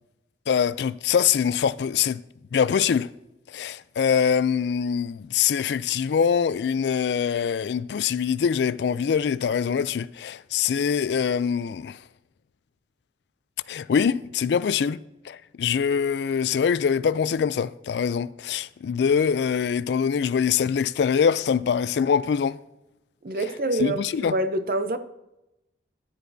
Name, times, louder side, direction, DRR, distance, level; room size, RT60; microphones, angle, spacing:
voice 1, 0.5-2.2 2.5-3.1 3.5-12.0 13.7-15.0 15.3-22.6 23.8-24.3, left 7 dB, 80° left, 0.3 m, -24 dB
voice 2, 23.2-25.0, right 2 dB, 55° right, 0.6 m, -26 dB
14.0 x 10.0 x 2.7 m
head